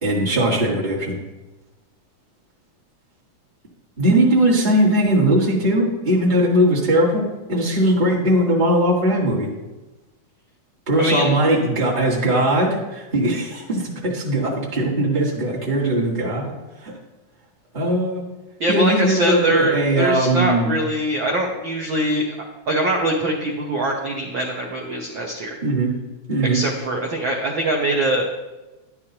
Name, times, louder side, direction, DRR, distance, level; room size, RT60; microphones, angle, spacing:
voice 1, 0.0-1.1 4.0-9.5 10.9-16.6 16.8-16.9 17.7-18.2 18.7-20.7 25.6-25.9 26.3-26.6, right 1 dB, 35° right, -6 dB, 0.7 m, -19 dB
voice 2, 11.0-11.3 18.6-25.6 26.5-28.3, right 1 dB, 85° right, 0 dB, 1.0 m, -23 dB
11.5 x 11.0 x 2.9 m, 1.1 s
omnidirectional pair, 3.7 m